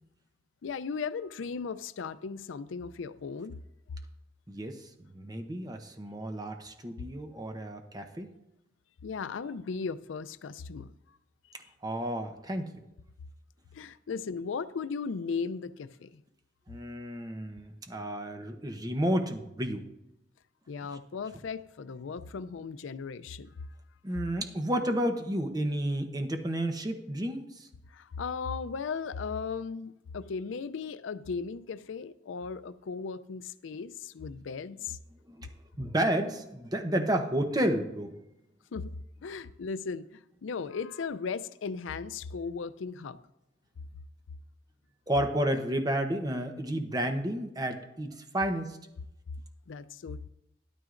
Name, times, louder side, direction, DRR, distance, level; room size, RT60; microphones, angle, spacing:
voice 1, 0.6-3.6 9.0-11.2 13.7-16.2 20.7-23.5 27.9-35.0 38.7-38.9 39.2-43.2 49.7-50.3, left 5 dB, 90° left, 14 dB, 0.5 m, -37 dB
voice 2, 4.5-8.3 11.8-12.8 16.7-19.9 24.0-27.7 35.3-35.5 35.8-38.1 45.1-48.8, right 1 dB, 20° right, 5 dB, 0.8 m, -31 dB
12.5 x 11.5 x 2.5 m, 0.87 s
head